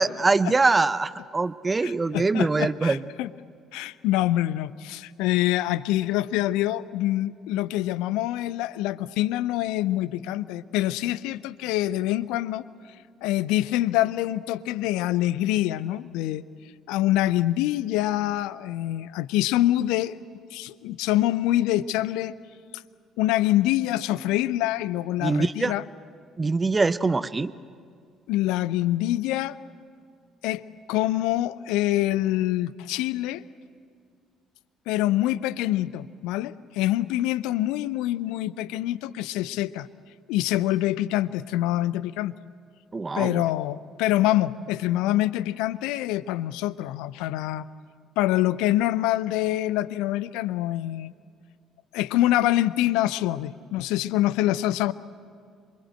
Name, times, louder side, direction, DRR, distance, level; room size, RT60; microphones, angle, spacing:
voice 1, 0.0-3.0 25.2-25.7 26.4-27.5 42.9-43.4, right 3 dB, 25° right, 15 dB, 0.8 m, -23 dB
voice 2, 1.8-3.3 3.7-12.6 13.2-16.4 16.9-20.2 20.5-22.3 23.2-25.8 28.3-29.6 30.4-30.6 30.9-33.4 34.9-39.9 40.3-42.3 43.1-47.6 48.2-51.1 51.9-54.9, left 14 dB, 65° left, 18 dB, 0.6 m, -25 dB
27.0 x 24.0 x 7.8 m, 2.2 s
figure-of-eight pair, 50°, 0 cm